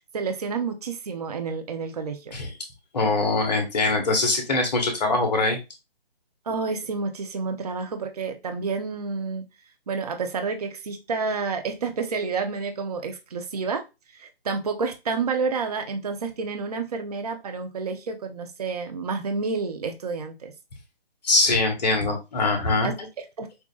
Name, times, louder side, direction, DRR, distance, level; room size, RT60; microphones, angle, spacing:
voice 1, 0.1-2.4 6.5-9.4 9.9-13.8 14.2-20.5 22.8-23.5, right 4 dB, 40° right, 6 dB, 0.7 m, -29 dB
voice 2, 2.9-5.6 21.2-22.9, left 2 dB, 45° left, 4 dB, 1.3 m, -22 dB
6.2 x 2.5 x 2.3 m, 0.25 s
figure-of-eight pair, 150°, 30 cm